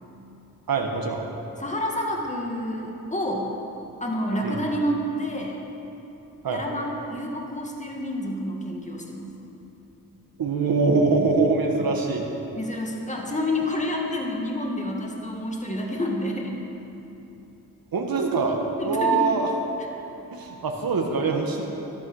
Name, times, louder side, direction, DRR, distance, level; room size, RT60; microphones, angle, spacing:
voice 1, 0.7-1.2 4.4-4.6 6.4-6.6 10.4-12.3 17.9-18.6 18.8-19.5 20.3-21.6, right 4 dB, 75° right, 1 dB, 1.5 m, -23 dB
voice 2, 1.6-3.5 4.0-5.6 6.5-9.3 11.8-11.9 12.6-16.6 18.8-19.2 21.5-21.6, left 1 dB, 20° left, 0 dB, 2.2 m, -29 dB
13.0 x 12.5 x 6.4 m, 3.0 s
cardioid pair, 70°, 36 cm